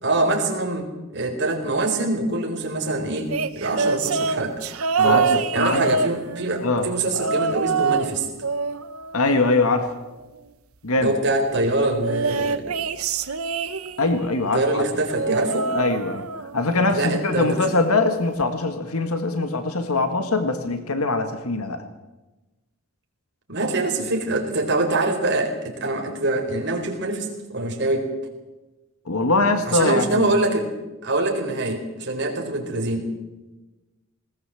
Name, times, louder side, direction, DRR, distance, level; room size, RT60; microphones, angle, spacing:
voice 1, 0.0-3.3 3.6-4.6 5.0-8.3 11.0-12.6 14.5-15.7 16.9-17.7 23.5-28.1 29.6-30.7 31.0-33.1, right 2 dB, 55° right, 2 dB, 4.3 m, -24 dB
sound 1, 3.3-6.6 7.1-8.1 8.4-10.0 12.0-14.2 15.1-16.6 16.9-17.3 18.4-18.5, right 5 dB, 85° right, 1.1 m, -25 dB
voice 2, 5.0-5.9 6.6-6.9 9.1-9.9 10.8-11.1 14.0-14.8 15.7-16.3 16.5-21.8 29.1-30.3, left 3 dB, 85° left, 7 dB, 1.8 m, -22 dB
20.0 x 18.5 x 7.6 m, 1.1 s
head